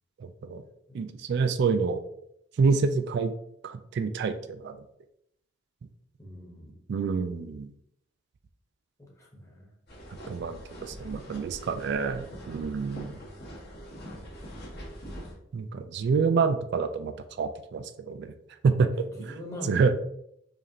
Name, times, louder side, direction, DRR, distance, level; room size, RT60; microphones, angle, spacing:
voice 1, 0.9-2.0 2.6-3.3 3.6-4.8 6.9-7.7 10.3-10.6 10.9-13.2 15.5-17.1 17.4-18.3 18.6-18.9 19.2-19.4 19.7-19.9, right 5 dB, 55° right, 8 dB, 0.3 m, -27 dB
voice 2, 6.2-6.7 9.0-9.7 13.1-13.5 18.9-20.0, left 1 dB, 15° left, -2 dB, 1.0 m, -42 dB
sound 1, 9.9-15.4, equal, 55° left, 1.1 m, -43 dB
4.9 x 2.5 x 2.8 m, 0.74 s
head